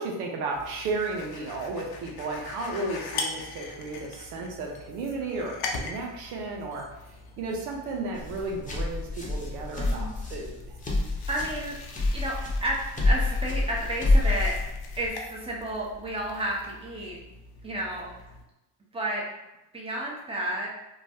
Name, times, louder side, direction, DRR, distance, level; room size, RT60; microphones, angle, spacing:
voice 1, 0.0-10.7, right 3 dB, 90° right, 0 dB, 0.6 m, -34 dB
sound 1, 0.5-18.4, left 3 dB, 50° left, 0.7 m, -42 dB
sound 2, 8.1-15.1, left 2 dB, 15° left, 0.8 m, -27 dB
voice 2, 9.8-10.2 11.3-11.7 12.1-12.3 12.6-12.8 13.0-14.5 15.0-17.2 17.6-18.1 18.9-19.2 19.7-20.7, right 1 dB, 10° right, -3 dB, 0.9 m, -31 dB
3.1 x 2.3 x 2.7 m, 0.94 s
supercardioid pair, 65°, 49 cm